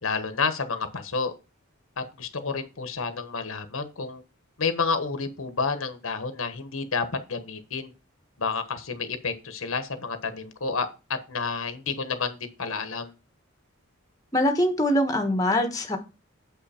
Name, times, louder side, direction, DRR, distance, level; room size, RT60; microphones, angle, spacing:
voice 1, 0.0-1.3 2.0-4.2 4.6-7.9 8.4-10.9 11.3-13.1, left 4 dB, 80° left, 9 dB, 1.2 m, -30 dB
voice 2, 14.3-16.0, left 1 dB, 15° left, 4 dB, 1.3 m, -23 dB
7.7 x 5.8 x 4.3 m, 0.30 s
head